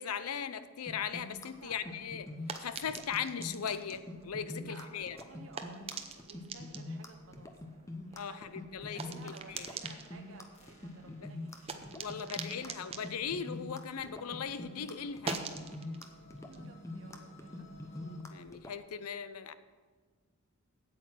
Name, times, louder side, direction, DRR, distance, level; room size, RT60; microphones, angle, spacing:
voice 1, 0.0-2.3 2.6-5.2 8.2-9.7 11.0-11.3 11.9-15.4 18.3-19.6, left 7 dB, 90° left, 13 dB, 0.6 m, -39 dB
sound 1, 0.9-18.8, left 2 dB, 15° left, 0.7 m, -44 dB
sound 2, 1.6-14.4 14.7-17.9, right 5 dB, 25° right, 0.6 m, -46 dB
voice 2, 1.6-1.9 4.6-13.0 16.4-17.8, right 3 dB, 65° right, 4 dB, 0.9 m, -55 dB
sound 3, 9.0-18.2, equal, 30° left, 1.9 m, -57 dB
8.7 x 8.1 x 6.1 m, 1.5 s
head